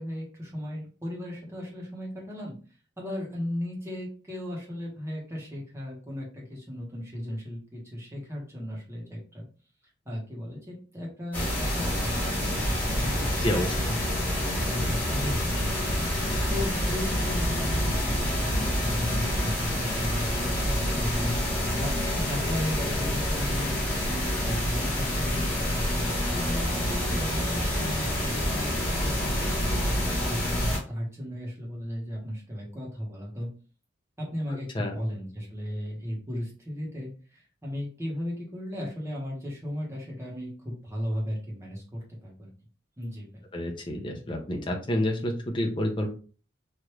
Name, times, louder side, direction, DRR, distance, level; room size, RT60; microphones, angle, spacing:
voice 1, 0.0-2.5 3.0-9.5 10.0-14.0 14.3-15.6 16.5-21.4 21.8-25.5 26.0-33.5 34.2-42.5 43.0-43.3, left 1 dB, 15° right, -3 dB, 1.0 m, -36 dB
sound 1, 11.3-30.8, equal, 10° left, 1.1 m, -27 dB
voice 2, 13.4-13.7 34.7-34.9 43.5-46.1, left 1 dB, 25° left, 1 dB, 0.6 m, -28 dB
3.2 x 2.5 x 2.9 m, 0.38 s
head